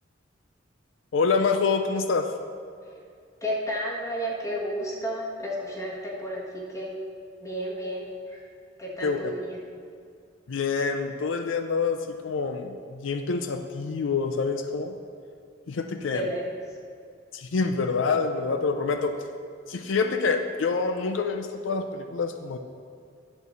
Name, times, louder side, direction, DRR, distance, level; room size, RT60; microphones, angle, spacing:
voice 1, 1.1-2.3 9.0-9.2 10.5-15.0 15.7-16.2 17.3-19.1 19.7-22.6, left 4 dB, 80° left, 6 dB, 0.5 m, -26 dB
voice 2, 3.4-7.0 7.4-8.4 8.8-9.6 16.1-16.4, equal, 15° left, -3 dB, 1.5 m, -32 dB
11.0 x 4.5 x 6.8 m, 2.3 s
head